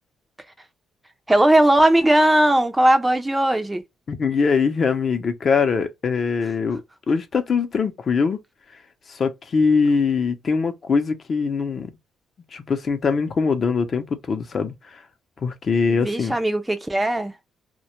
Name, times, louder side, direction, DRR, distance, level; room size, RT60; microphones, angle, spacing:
voice 1, 1.3-3.8 15.9-17.3, right 1 dB, 10° right, 0.4 m, -18 dB
voice 2, 4.1-6.8 7.1-8.4 9.1-11.9 12.5-15.0 15.4-16.3, left 5 dB, 45° left, 0.5 m, -22 dB
2.1 x 2.0 x 2.9 m
cardioid pair, 90°, 0 cm